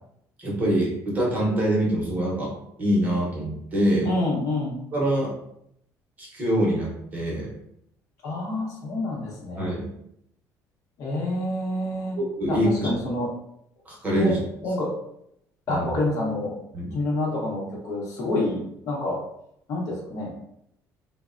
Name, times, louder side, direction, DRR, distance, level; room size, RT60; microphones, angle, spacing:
voice 1, 0.4-4.1 4.9-5.3 6.2-7.5 9.6-9.9 12.2-12.9 13.9-14.4 15.7-15.9 16.7-16.9, right 1 dB, 25° right, -4 dB, 0.7 m, -24 dB
voice 2, 4.0-4.8 8.2-9.7 11.0-12.2 12.5-13.3 14.1-14.4 14.6-14.9 15.7-16.6 16.9-19.2 19.7-20.3, left 2 dB, 55° left, -2 dB, 0.8 m, -28 dB
3.1 x 2.0 x 2.4 m, 0.74 s
cardioid pair, 175°, 7 cm